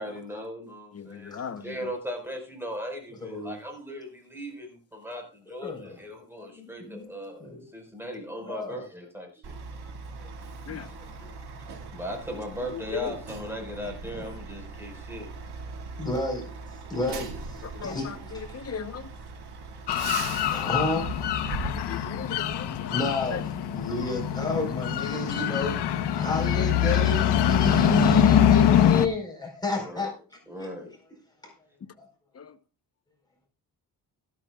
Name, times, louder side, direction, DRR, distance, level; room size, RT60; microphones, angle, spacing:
voice 1, 0.0-1.3 1.6-4.7 4.9-5.2 5.5-5.7 6.0-7.4 7.7-9.3 11.9-15.3 30.5-30.9, equal, 5° right, 4.8 m, -37 dB
voice 2, 0.9-1.9 10.7-10.9 12.6-13.2 17.6-19.1 21.6-22.9 23.3-23.4 32.3-32.6, left 6 dB, 35° left, 1.0 m, -38 dB
voice 3, 3.2-3.6 5.5-6.0 6.4-7.1 7.4-7.7 8.4-8.9 9.8-9.9 10.7-10.9 13.0-13.1 13.8-14.4 16.0-16.5 16.9-18.5 20.4-21.1 21.8-22.1 22.9-25.8 26.1-30.1 30.6-30.7 31.4-31.5 32.0-32.1, left 2 dB, 10° left, 4.5 m, -31 dB
Truck, 9.4-22.6, right 4 dB, 75° right, 2.5 m, -40 dB
sound 1, 19.9-29.1, left 10 dB, 80° left, 1.0 m, -24 dB
14.0 x 13.0 x 2.4 m
cardioid pair, 145°, 40 cm